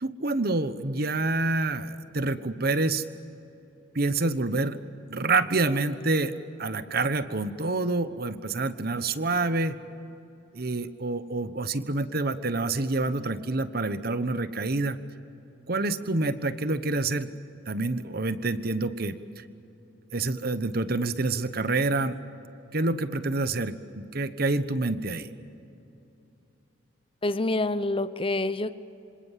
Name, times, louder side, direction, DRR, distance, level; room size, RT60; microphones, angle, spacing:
voice 1, 0.0-3.0 3.9-4.8 5.1-9.8 10.5-15.0 15.7-17.3 17.7-19.4 20.1-22.2 22.7-25.3, right 2 dB, 55° right, 12 dB, 1.2 m, -27 dB
voice 2, 27.2-28.7, left 2 dB, 30° left, 13 dB, 0.7 m, -27 dB
27.0 x 26.5 x 7.6 m, 2.9 s
head